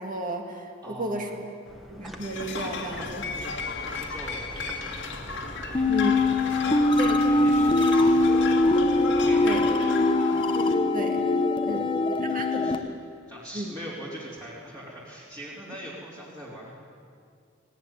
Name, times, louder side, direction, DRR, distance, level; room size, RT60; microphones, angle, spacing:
voice 1, 0.0-1.4 1.9-3.3 5.9-6.2 7.0-7.3 9.4-9.7 10.9-11.2 11.6-12.8 13.5-13.8, right 1 dB, 45° right, 3 dB, 2.2 m, -33 dB
voice 2, 0.8-1.3 3.3-5.0 5.7-8.5 9.1-9.5 9.8-9.9 11.7-12.8 13.3-16.7, equal, 20° right, -7 dB, 3.4 m, -42 dB
sound 1, 1.7-9.7, equal, ahead, 1.7 m, -43 dB
sound 2, 2.2-10.7, left 4 dB, 65° left, 2.0 m, -35 dB
sound 3, 5.7-12.8, left 2 dB, 25° left, 1.0 m, -22 dB
18.5 x 17.0 x 9.7 m, 2.2 s
head